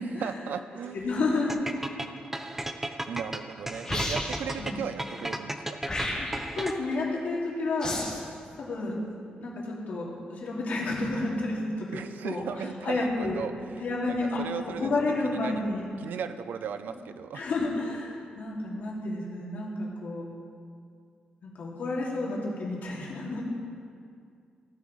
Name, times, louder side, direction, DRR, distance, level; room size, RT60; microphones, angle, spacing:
voice 1, 0.2-1.1 3.1-5.8 11.9-14.9 15.2-15.6 16.0-17.5, right 7 dB, 85° right, 11 dB, 0.5 m, -37 dB
voice 2, 0.9-2.0 4.6-4.8 6.2-6.3 6.6-7.9 8.6-12.4 12.8-13.4 13.8-14.4 14.8-15.8 17.3-20.2 21.4-23.5, left 2 dB, 65° left, -4 dB, 2.4 m, -31 dB
sound 1, 1.5-7.0, right 1 dB, 10° right, 0.5 m, -34 dB
sound 2, 3.9-4.5 5.8-6.5 7.8-8.3, left 1 dB, 25° left, 2.3 m, -32 dB
15.5 x 9.5 x 3.2 m, 2.3 s
wide cardioid pair, 140°, 3 cm